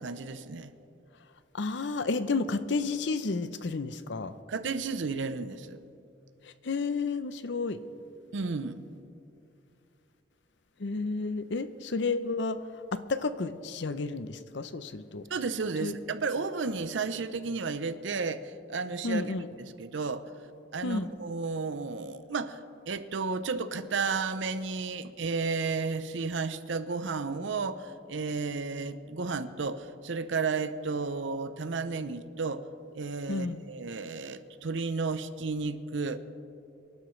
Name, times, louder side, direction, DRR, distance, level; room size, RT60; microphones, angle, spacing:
voice 1, 0.0-0.7 4.5-5.8 8.3-8.8 15.3-20.2 20.7-22.6 22.9-32.7 32.9-36.2, right 4 dB, 80° right, 12 dB, 0.7 m, -33 dB
voice 2, 1.5-4.3 6.6-7.8 10.8-12.6 12.9-15.2 15.8-15.9 19.0-19.5 20.8-21.1 33.3-33.6, left 3 dB, 70° left, 13 dB, 0.6 m, -31 dB
25.5 x 11.5 x 3.2 m, 2.7 s
head